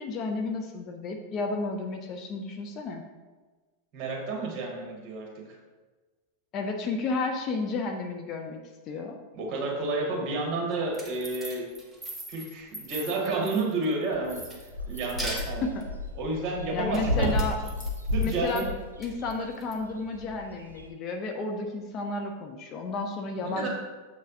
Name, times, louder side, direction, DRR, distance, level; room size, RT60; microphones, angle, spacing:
voice 1, 0.0-3.0 6.5-8.6 8.9-9.2 15.3-15.8 16.7-17.5 18.2-18.6 19.0-23.7, left 3 dB, 35° left, 4 dB, 0.6 m, -32 dB
voice 2, 3.9-5.3 9.3-11.7 12.3-14.4 14.8-15.7 16.1-17.3 18.1-18.7 23.4-23.7, right 3 dB, 35° right, -1 dB, 1.8 m, -30 dB
sound 1, 10.7-13.9 14.3-15.8 16.9-18.7 19.0-19.7, right 1 dB, ahead, 1.2 m, -40 dB
sound 2, 14.1-20.9, left 1 dB, 75° right, 0.7 m, -33 dB
6.8 x 6.3 x 2.7 m, 1.3 s
figure-of-eight pair, 90°, 0 cm